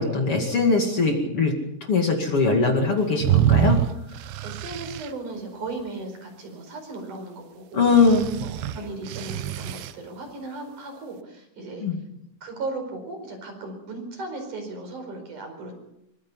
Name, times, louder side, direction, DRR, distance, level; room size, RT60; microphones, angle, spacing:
voice 1, 0.0-1.5 1.9-3.8 7.7-8.3 11.8-12.0, left 4 dB, 45° left, 3 dB, 2.0 m, -21 dB
sound 1, 3.2-5.1 7.9-9.9, right 10 dB, 80° right, 2.3 m, -25 dB
voice 2, 4.4-8.0 8.4-11.9 12.4-15.7, right 2 dB, 40° right, 5 dB, 5.9 m, -36 dB
24.5 x 21.0 x 5.6 m, 0.81 s
omnidirectional pair, 5.9 m